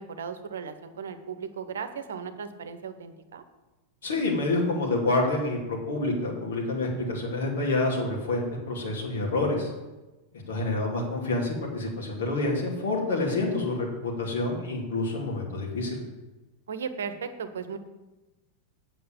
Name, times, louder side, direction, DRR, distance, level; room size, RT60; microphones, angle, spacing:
voice 1, 0.0-3.4 13.1-13.7 16.7-17.8, right 6 dB, 65° right, 10 dB, 1.0 m, -37 dB
voice 2, 4.0-9.7 10.5-16.0, left 2 dB, 65° left, -1 dB, 2.7 m, -28 dB
8.7 x 7.7 x 7.1 m, 1.1 s
figure-of-eight pair, 90°, 0 cm